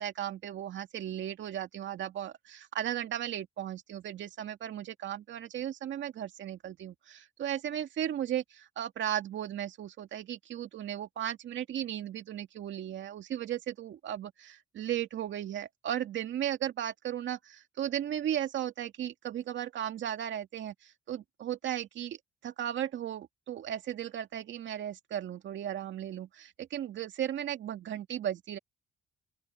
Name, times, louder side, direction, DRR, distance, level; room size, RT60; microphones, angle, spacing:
voice 1, 0.0-22.2 22.4-28.6, right 11 dB, 70° right, 2.4 m, -36 dB
open air
cardioid pair, 90°, 20 cm